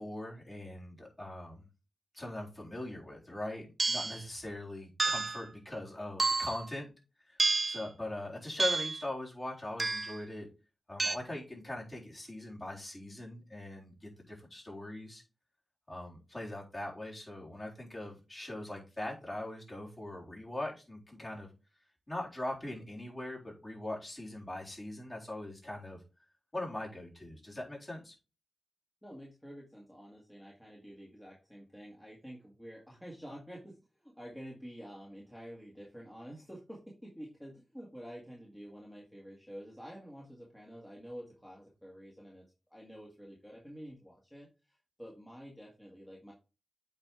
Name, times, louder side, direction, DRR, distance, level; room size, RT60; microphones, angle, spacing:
voice 1, 0.0-1.7 2.1-6.9 7.3-7.4 7.6-10.5 10.9-15.2 15.9-21.5 22.1-26.0 26.5-28.1, left 1 dB, 30° left, -4 dB, 3.9 m, -41 dB
sound 1, 3.8-4.2 5.0-5.4 6.2-6.7 7.4-7.8 8.6-9.0 9.8-10.2 11.0-11.2, right 3 dB, 35° right, 0.7 m, -30 dB
voice 2, 29.0-42.5 42.7-46.3, equal, 10° left, -3 dB, 1.9 m, -49 dB
8.4 x 4.5 x 3.5 m, 0.30 s
cardioid pair, 60°, 0 cm